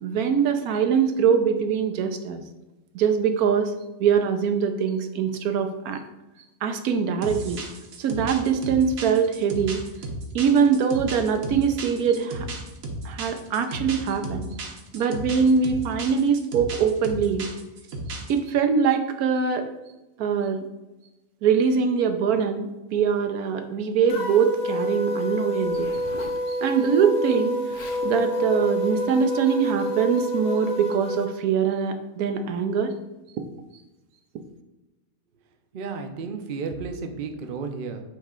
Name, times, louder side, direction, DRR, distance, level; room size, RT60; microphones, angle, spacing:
voice 1, 0.0-2.4 2.9-3.7 4.0-6.0 6.6-7.6 8.0-9.8 10.3-12.5 13.0-14.5 14.9-17.5 18.3-19.7 20.2-20.6 21.4-25.9 26.5-27.6 28.0-33.0, right 6 dB, 85° right, 7 dB, 1.2 m, -23 dB
sound 1, 7.2-18.4, right 2 dB, 70° right, 1.3 m, -34 dB
sound 2, 24.1-31.3, equal, 65° left, 1.1 m, -28 dB
Zipper (clothing), 25.6-26.4 27.4-27.5 27.7-28.1 28.8-29.0, left 2 dB, 45° left, 0.6 m, -42 dB
voice 2, 35.7-38.0, right 4 dB, 50° right, 6 dB, 0.6 m, -32 dB
8.3 x 3.2 x 3.7 m, 1.0 s
omnidirectional pair, 1.5 m